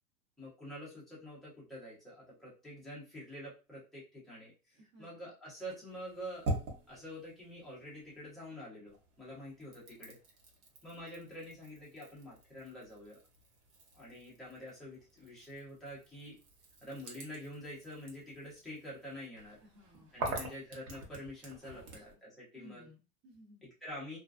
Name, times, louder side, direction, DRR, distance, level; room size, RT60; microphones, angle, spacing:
voice 1, 0.4-6.6 6.9-10.2 10.8-13.2 13.9-16.4 16.8-19.6 20.1-22.9 23.6-24.2, equal, ahead, -8 dB, 0.4 m, -47 dB
voice 2, 4.7-5.2 19.6-20.5 21.7-22.2 22.5-23.7, equal, 30° right, -2 dB, 0.7 m, -59 dB
sound 1, 5.9-8.5 8.9-22.1, right 2 dB, 70° right, 1.1 m, -45 dB
2.5 x 2.1 x 2.3 m, 0.32 s
hypercardioid pair, 135°, 45 cm